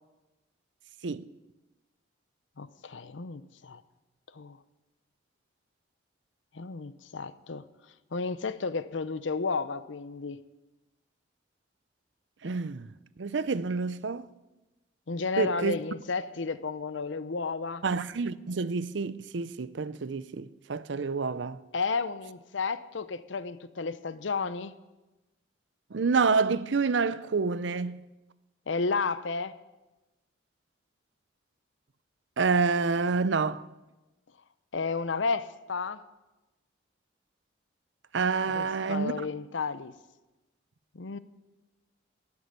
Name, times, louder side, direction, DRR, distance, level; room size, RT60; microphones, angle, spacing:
voice 1, 2.6-3.8 4.3-4.6 6.5-7.6 8.1-10.4 15.1-17.8 21.7-24.8 28.7-29.5 34.7-36.0 38.5-39.9 40.9-41.2, left 4 dB, 80° left, 0.7 m, -32 dB
voice 2, 12.4-12.9 13.2-14.3 15.4-15.7 17.8-21.6 25.9-28.0 32.4-33.6 38.1-39.1, right 4 dB, 75° right, 0.6 m, -28 dB
12.5 x 9.8 x 9.3 m
head